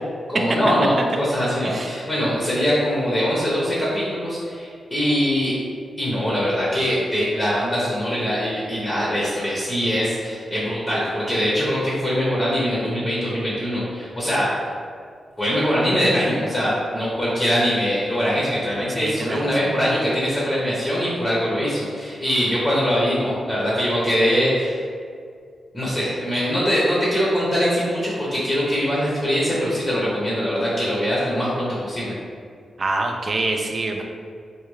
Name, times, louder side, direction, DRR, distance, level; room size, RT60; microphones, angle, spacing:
voice 1, 0.3-5.5 6.0-14.5 15.4-24.8 25.7-32.2, equal, 15° left, -7 dB, 0.7 m, -22 dB
voice 2, 19.0-19.4 32.8-34.0, right 2 dB, 40° right, 2 dB, 0.4 m, -25 dB
3.4 x 2.3 x 3.1 m, 2.2 s
wide cardioid pair, 120°, 0 cm